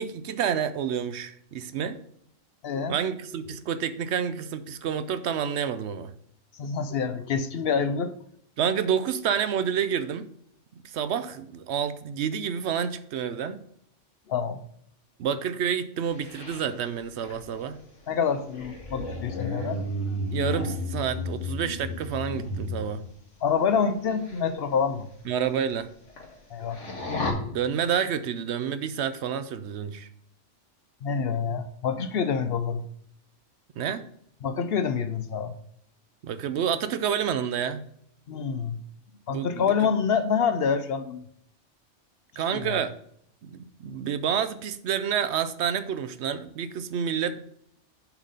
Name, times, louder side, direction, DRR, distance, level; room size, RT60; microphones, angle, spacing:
voice 1, 0.0-2.0 2.9-6.1 8.6-10.3 10.8-13.6 15.2-17.8 20.3-23.0 25.3-25.9 27.5-30.1 33.8-34.0 36.2-37.9 39.3-39.7 42.4-42.9 43.4-47.4, right 8 dB, 70° right, 12 dB, 0.8 m, -29 dB
voice 2, 2.6-3.0 6.6-8.1 14.3-14.6 18.1-19.8 23.4-25.1 26.5-26.8 31.0-32.8 34.4-35.5 38.3-38.8 39.3-41.2 42.5-42.8, left 6 dB, 60° left, 10 dB, 0.7 m, -27 dB
sound 1, 16.1-23.0 24.0-24.4 24.8-24.9 25.4-25.5 25.7-26.4 26.7-27.3, left 2 dB, 80° left, 1.8 m, -33 dB
7.2 x 4.0 x 6.5 m, 0.69 s
omnidirectional pair, 1.2 m